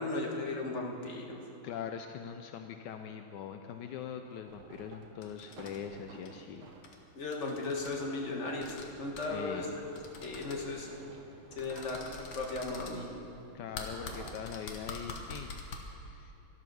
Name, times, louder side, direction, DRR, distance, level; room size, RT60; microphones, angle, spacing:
voice 1, 0.0-1.4 7.1-9.7 10.2-10.9 11.5-13.1, left 2 dB, 35° left, 0 dB, 1.5 m, -36 dB
voice 2, 1.6-6.7 9.3-9.7 13.5-15.6 16.0-16.3, left 8 dB, 80° left, 6 dB, 1.0 m, -42 dB
sound 1, 4.3-7.0 7.5-12.7 13.5-14.3, right 5 dB, 75° right, 1.8 m, -52 dB
sound 2, 5.2-5.8 6.1-6.3 6.8-7.0 7.2-7.9 8.6-8.9 9.1-9.3 9.9-10.6 11.6-12.9 13.7-15.8, left 4 dB, 60° left, 1.9 m, -44 dB
12.0 x 12.0 x 6.1 m, 2.8 s
omnidirectional pair, 2.4 m